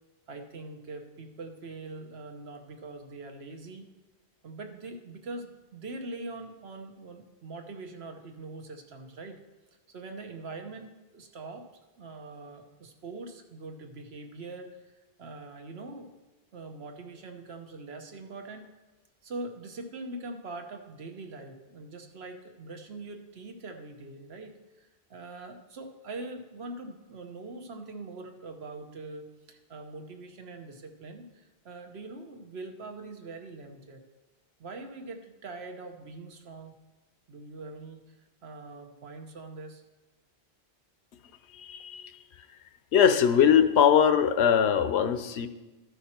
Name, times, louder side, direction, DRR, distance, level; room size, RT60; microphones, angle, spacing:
voice 1, 0.3-3.9 4.4-9.4 9.9-11.6 12.0-14.7 15.2-16.1 16.5-18.7 19.2-34.0 34.6-36.7 37.3-38.0 38.4-39.8, right 3 dB, 75° right, 5 dB, 1.2 m, -43 dB
voice 2, 41.6-42.1 42.9-45.5, left 8 dB, 80° left, 11 dB, 0.9 m, -21 dB
13.5 x 5.7 x 4.3 m, 1.1 s
omnidirectional pair, 1.1 m